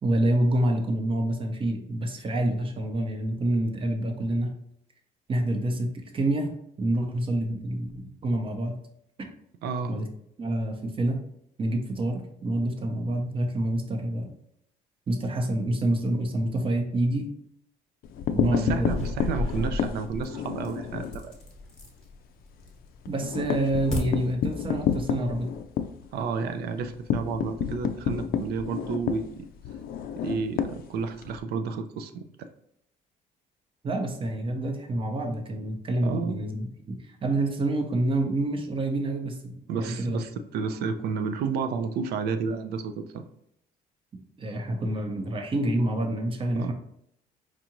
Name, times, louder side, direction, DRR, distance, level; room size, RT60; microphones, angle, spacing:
voice 1, 0.0-4.5 5.3-8.7 9.2-9.3 9.9-10.1 10.4-11.2 11.6-14.3 15.1-17.3 18.3-18.9 23.1-25.5 33.8-40.2 44.4-46.7, right 1 dB, 30° right, 4 dB, 0.7 m, -27 dB
voice 2, 9.6-9.9 18.4-21.3 26.1-29.5 30.2-32.5 36.0-36.5 39.7-43.3 46.5-46.7, right 5 dB, 70° right, 9 dB, 0.5 m, -31 dB
sound 1, 18.0-21.2 21.6-21.8 22.1-22.2 22.5-31.4, left 8 dB, 60° left, 0.4 m, -30 dB
sound 2, 18.8-22.0 22.5-23.0 23.3-24.0, left 1 dB, 5° left, 1.1 m, -33 dB
4.6 x 2.5 x 2.9 m, 0.74 s
cardioid pair, 110°, 17 cm